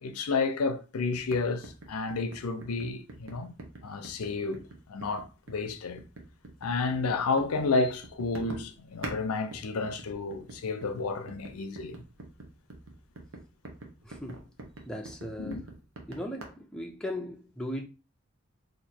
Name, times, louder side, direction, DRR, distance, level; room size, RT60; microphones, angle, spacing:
voice 1, 0.0-3.5 3.8-6.0 6.6-12.0 15.4-15.6, left 3 dB, 85° left, 0.5 m, -31 dB
sound 1, 1.1-9.2 9.5-16.5, right 2 dB, 60° right, 0.9 m, -45 dB
voice 2, 14.0-14.5 14.9-15.7 16.1-17.8, left 1 dB, 5° left, 0.4 m, -38 dB
2.9 x 2.6 x 4.3 m
head